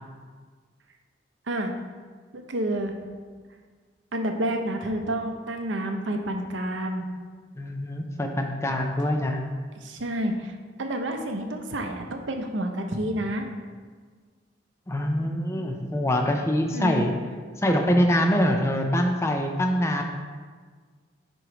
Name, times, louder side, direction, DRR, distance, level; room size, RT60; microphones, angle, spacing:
voice 1, 2.3-2.9 4.1-7.1 9.8-13.5 16.7-17.1, right 1 dB, 80° right, 4 dB, 0.7 m, -29 dB
voice 2, 7.6-9.4 14.9-17.2 17.6-20.0, equal, 15° left, 3 dB, 0.4 m, -24 dB
7.8 x 3.1 x 4.9 m, 1.6 s
head